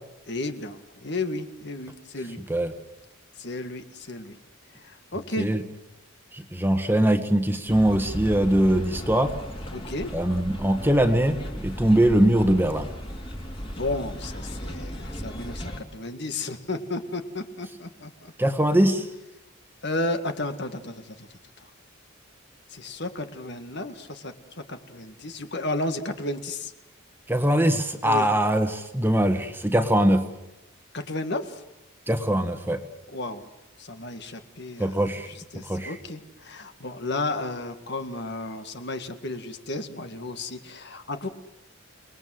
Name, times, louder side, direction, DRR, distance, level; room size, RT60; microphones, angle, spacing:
voice 1, 0.3-2.4 3.4-4.4 4.8-5.5 9.7-10.1 13.7-18.3 19.8-21.3 22.7-24.3 24.7-26.7 28.0-28.3 30.9-31.6 33.1-33.4 33.8-41.4, left 2 dB, 50° left, 8 dB, 1.9 m, -33 dB
voice 2, 6.3-9.4 10.1-12.9 18.4-19.1 27.3-30.3 32.1-32.8 34.8-35.3 35.5-36.0, right 1 dB, 10° right, 7 dB, 1.5 m, -22 dB
sound 1, 7.7-15.8, equal, 25° left, 2.9 m, -36 dB
30.0 x 20.0 x 7.8 m, 0.94 s
head